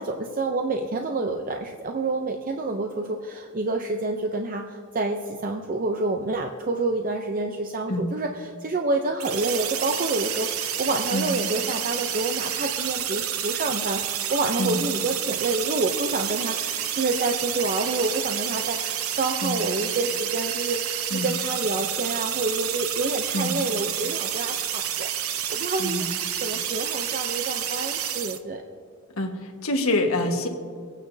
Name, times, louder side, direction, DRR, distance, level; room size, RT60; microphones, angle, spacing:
voice 1, 0.0-28.6, right 2 dB, 40° right, 3 dB, 0.6 m, -28 dB
sound 1, 9.2-28.4, right 10 dB, 90° right, 0.7 m, -29 dB
voice 2, 29.1-30.5, left 1 dB, 80° left, 2 dB, 1.5 m, -26 dB
23.5 x 9.1 x 2.7 m, 2.2 s
head